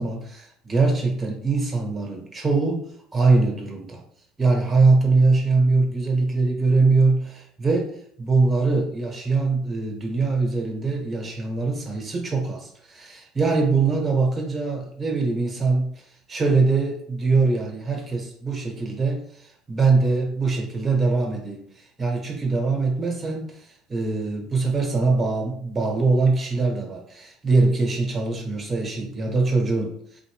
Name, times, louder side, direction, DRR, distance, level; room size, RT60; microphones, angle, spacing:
voice 1, 0.0-4.0 4.4-15.9 16.3-21.6 22.0-30.2, right 3 dB, 20° right, 1 dB, 1.3 m, -22 dB
4.1 x 2.5 x 3.5 m, 0.64 s
figure-of-eight pair, 65°, 0 cm